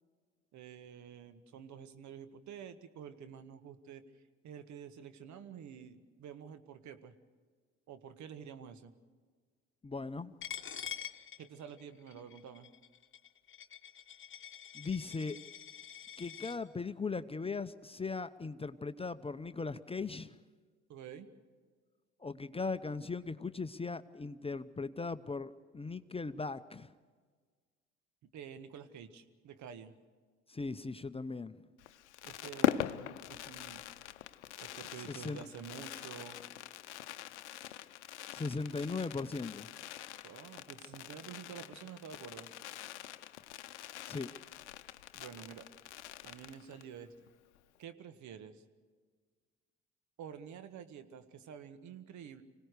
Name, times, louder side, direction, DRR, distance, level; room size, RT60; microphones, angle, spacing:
voice 1, 0.5-4.0 4.4-7.1 7.9-8.9 11.4-12.7 20.9-21.3 28.3-29.9 32.2-33.8 34.6-36.4 40.2-42.5 45.1-45.7 46.2-47.3 47.8-48.6 50.2-52.4, right 8 dB, 55° right, 11 dB, 1.6 m, -49 dB
voice 2, 9.8-10.3 14.7-15.4 16.2-20.4 22.2-26.9 30.5-31.6 35.1-35.4 38.3-39.7 44.0-44.3, left 4 dB, 15° left, 12 dB, 0.8 m, -38 dB
Coin (dropping), 10.4-16.6, left 9 dB, 35° left, 1.3 m, -46 dB
Fireworks, 31.8-47.0 47.3-47.4 47.6-47.8, left 12 dB, 80° left, 0.7 m, -42 dB
25.5 x 17.5 x 6.7 m, 1.5 s
hypercardioid pair, 55°, 34 cm